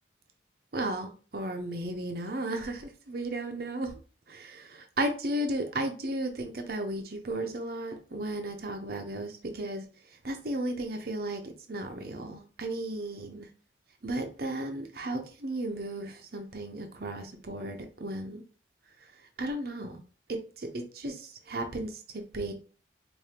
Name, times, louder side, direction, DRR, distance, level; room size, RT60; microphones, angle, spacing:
voice 1, 0.7-3.9 4.3-9.8 10.2-11.4 11.7-13.5 14.0-18.4 19.4-20.0 20.6-22.5, right 1 dB, 55° right, 5 dB, 0.6 m, -34 dB
4.9 x 2.6 x 2.9 m, 0.37 s
head